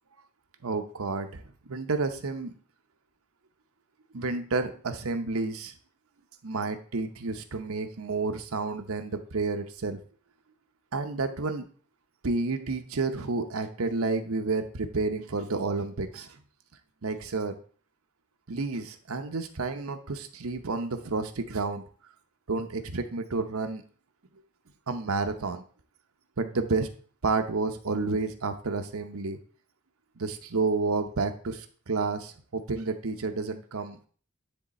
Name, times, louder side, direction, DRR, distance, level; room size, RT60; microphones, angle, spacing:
voice 1, 0.6-1.4 1.7-2.6 4.1-5.7 6.4-10.0 10.9-11.6 12.2-16.3 17.0-17.5 18.5-21.8 22.5-23.8 24.9-25.6 26.4-26.9 27.2-29.4 30.2-34.1, right 3 dB, 75° right, 7 dB, 0.8 m, -30 dB
9.9 x 3.6 x 4.2 m, 0.43 s
head